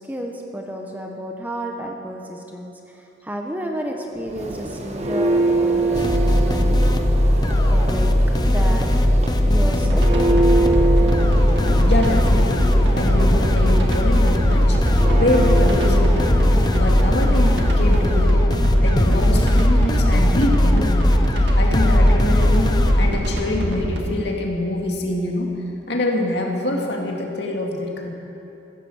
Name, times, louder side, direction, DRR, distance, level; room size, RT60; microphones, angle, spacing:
voice 1, 0.0-6.8 7.6-8.1 8.4-8.9 9.5-10.2, equal, 10° right, 1 dB, 1.1 m, -31 dB
Church bell, 4.2-18.4, right 2 dB, 35° right, 1.1 m, -25 dB
sound 1, 5.9-23.1, left 1 dB, 20° left, 0.7 m, -18 dB
sound 2, 9.9-24.0, equal, 65° right, 1.9 m, -25 dB
voice 2, 11.8-18.5 18.8-21.2 21.6-25.5 25.9-28.1, left 1 dB, 60° left, 0 dB, 2.3 m, -25 dB
15.5 x 14.5 x 6.5 m, 2.9 s
head